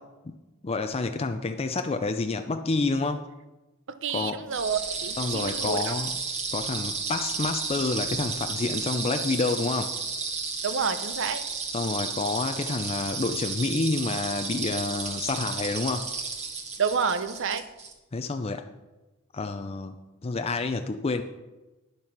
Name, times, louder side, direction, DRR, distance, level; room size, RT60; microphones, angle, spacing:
voice 1, 0.6-3.2 4.1-4.4 5.2-6.1 6.5-9.9 11.7-16.1 18.1-18.6 19.3-20.0 20.2-21.2, left 3 dB, 30° left, 7 dB, 0.5 m, -28 dB
voice 2, 3.9-6.0 10.6-11.4 16.8-17.6, right 6 dB, 60° right, 11 dB, 0.7 m, -29 dB
sound 1, 4.5-17.9, right 4 dB, 30° right, 1.6 m, -33 dB
10.5 x 7.0 x 6.0 m, 1.1 s
head